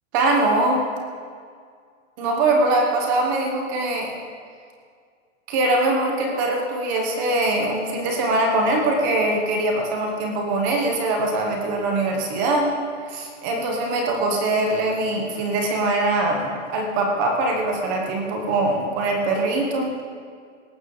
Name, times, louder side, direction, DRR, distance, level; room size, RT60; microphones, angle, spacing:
voice 1, 0.1-0.8 2.2-4.2 5.5-12.7 13.1-19.9, right 2 dB, 15° right, 2 dB, 0.9 m, -22 dB
18.0 x 14.5 x 3.8 m, 2.1 s
hypercardioid pair, 180°, 39 cm